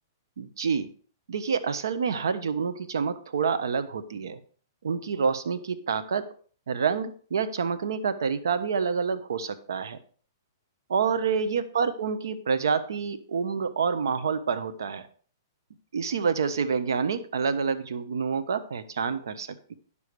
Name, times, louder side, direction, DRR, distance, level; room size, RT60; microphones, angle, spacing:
voice 1, 0.4-0.9 1.3-4.4 4.8-6.3 6.7-10.0 10.9-15.1 15.9-19.7, right 6 dB, 85° right, 12 dB, 1.2 m, -28 dB
10.0 x 7.2 x 4.8 m, 0.43 s
hypercardioid pair, 160°, 2 cm